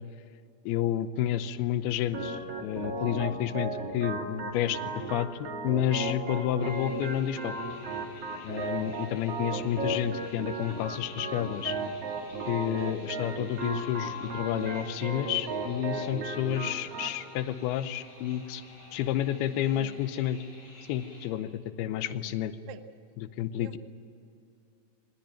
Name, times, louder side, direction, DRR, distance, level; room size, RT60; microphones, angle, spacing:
voice 1, 0.6-7.6 8.4-11.8 12.5-18.6 18.9-20.4 20.9-22.6 23.2-23.7, left 11 dB, 90° left, 12 dB, 2.8 m, -30 dB
Organ, 2.1-17.1, right 2 dB, 45° right, 3.1 m, -35 dB
sound 1, 6.6-21.3, left 2 dB, 45° left, 6.6 m, -53 dB
voice 2, 19.3-20.0 22.7-22.8 23.6-23.8, right 10 dB, 75° right, 10 dB, 1.8 m, -46 dB
24.5 x 20.5 x 9.2 m, 2.5 s
omnidirectional pair, 4.4 m